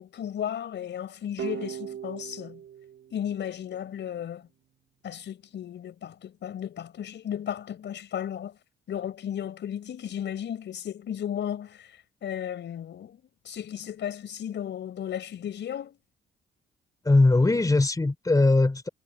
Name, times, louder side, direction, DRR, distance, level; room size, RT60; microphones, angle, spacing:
voice 1, 0.0-2.6 3.1-4.5 5.0-8.6 8.9-16.0, left 9 dB, 65° left, 5.1 m, -35 dB
sound 1, 1.4-4.2, right 9 dB, 70° right, 3.2 m, -39 dB
voice 2, 17.0-18.9, left 2 dB, 15° left, 3.2 m, -20 dB
cardioid pair, 90°, 20 cm